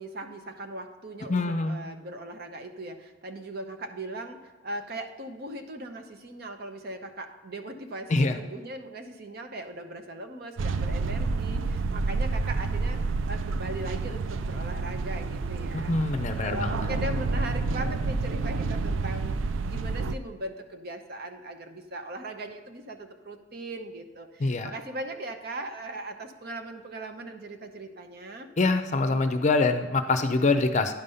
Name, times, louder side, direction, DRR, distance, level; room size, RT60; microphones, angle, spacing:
voice 1, 0.0-15.9 16.4-28.5, right 1 dB, 50° right, 6 dB, 0.9 m, -39 dB
voice 2, 1.3-1.8 8.1-8.4 15.7-16.9 24.4-24.7 28.6-30.9, left 3 dB, 40° left, 8 dB, 0.5 m, -25 dB
sound 1, 10.6-20.2, right 3 dB, 75° right, 0.4 m, -29 dB
10.5 x 5.4 x 5.5 m, 1.3 s
head